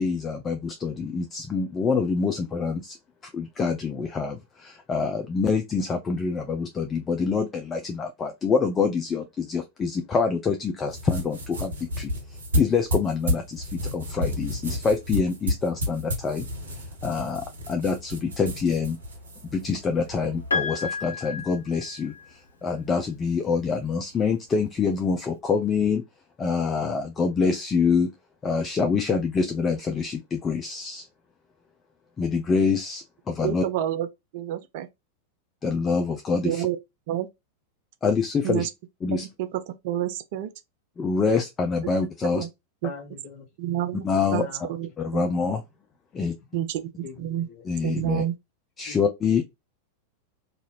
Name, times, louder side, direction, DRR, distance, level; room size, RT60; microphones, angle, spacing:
voice 1, 0.0-3.0 3.2-12.1 12.5-16.5 17.0-19.0 19.5-26.0 26.4-28.1 28.4-31.1 32.2-33.6 35.6-36.7 38.0-38.7 39.0-39.2 41.0-42.4 44.0-44.4 45.0-45.6 46.1-46.3 47.7-48.2 48.8-49.4, left 5 dB, 20° left, 0.4 m, -26 dB
sound 1, 10.8-20.5, left 1 dB, 70° right, 1.2 m, -31 dB
Piano, 20.5-22.5 23.8-23.9, left 4 dB, 75° left, 0.7 m, -31 dB
voice 2, 33.4-34.1 34.3-34.9 36.4-36.8 37.1-37.3 38.4-38.7 39.1-40.5 42.3-42.5 42.8-42.9 43.6-44.0 44.3-45.3 46.5-46.9 47.2-47.5 47.8-48.4, right 12 dB, 50° right, 0.4 m, -28 dB
voice 3, 42.8-43.5 44.3-44.7 45.3-45.5 47.0-47.6 48.9-49.0, left 5 dB, 40° left, 1.0 m, -41 dB
2.7 x 2.4 x 2.9 m
figure-of-eight pair, 90°, 0 cm